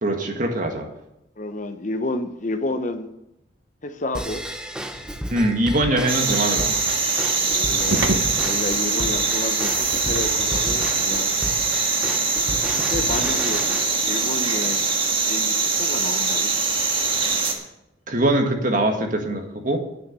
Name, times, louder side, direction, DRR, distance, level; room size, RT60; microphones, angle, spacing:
voice 1, 0.0-0.9 5.3-6.8 18.1-19.8, right 1 dB, 45° right, 3 dB, 1.8 m, -22 dB
voice 2, 1.4-3.1 3.8-4.4 7.4-11.3 12.7-13.7 14.0-14.9 15.2-16.5, left 2 dB, 40° left, 8 dB, 0.8 m, -30 dB
Drum kit / Drum / Bell, 4.1-13.8, equal, 5° right, 0.7 m, -33 dB
sound 1, 4.9-11.2, right 2 dB, 75° right, 1.2 m, -33 dB
sound 2, 6.1-17.5, right 4 dB, 25° right, 1.6 m, -23 dB
10.0 x 9.1 x 6.8 m, 0.85 s
head